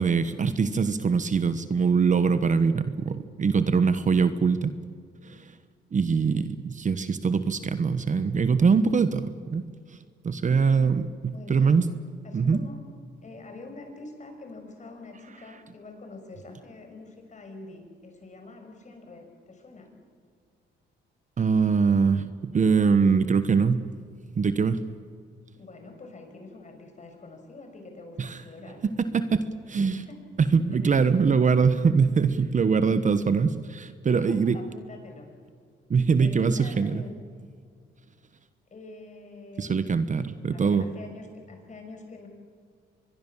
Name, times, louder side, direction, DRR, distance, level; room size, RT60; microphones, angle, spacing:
voice 1, 0.0-4.7 5.2-5.4 5.9-9.6 10.2-11.8 12.3-12.6 21.4-22.3 22.5-23.9 24.3-24.8 28.2-28.4 29.1-30.0 30.5-34.6 35.9-37.0 39.6-40.8, right 5 dB, 40° right, 12 dB, 1.2 m, -23 dB
voice 2, 11.3-11.7 12.2-12.8 13.2-19.9 25.5-28.8 29.8-30.2 34.1-35.3 36.2-37.1 38.7-40.0 40.5-42.3, left 3 dB, 35° left, 4 dB, 6.0 m, -45 dB
24.0 x 22.0 x 7.3 m, 2.1 s
cardioid pair, 90°, 20 cm